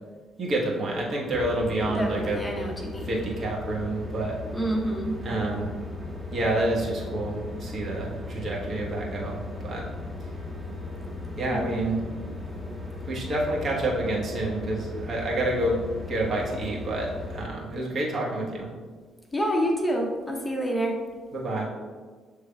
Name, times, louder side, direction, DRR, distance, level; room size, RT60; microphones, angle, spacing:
voice 1, 0.4-2.4 3.0-4.4 5.2-5.7 6.3-9.9 11.4-12.1 13.0-15.8 16.1-18.7 21.3-21.7, right 1 dB, 50° right, -3 dB, 1.2 m, -28 dB
sound 1, 1.3-17.5, left 2 dB, 15° right, 1.0 m, -37 dB
voice 2, 1.9-3.2 4.5-5.2 11.5-11.9 19.3-21.0, right 1 dB, 15° left, 0 dB, 0.7 m, -28 dB
6.9 x 3.3 x 2.2 m, 1.5 s
hypercardioid pair, 45°, 0 cm